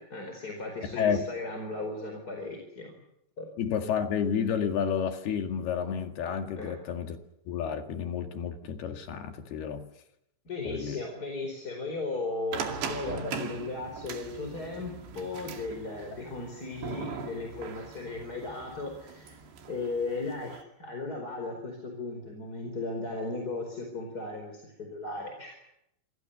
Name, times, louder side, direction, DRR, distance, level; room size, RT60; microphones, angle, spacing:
voice 1, 0.0-3.0 3.4-3.5 6.6-6.8 10.4-19.4 19.7-25.5, left 3 dB, 20° left, 3 dB, 4.5 m, -36 dB
voice 2, 3.6-7.2 7.5-9.9 10.7-11.0, left 7 dB, 65° left, 5 dB, 3.9 m, -30 dB
sound 1, 12.5-20.6, right 5 dB, 70° right, 4.5 m, -40 dB
28.0 x 26.0 x 6.9 m, 0.80 s
omnidirectional pair, 5.3 m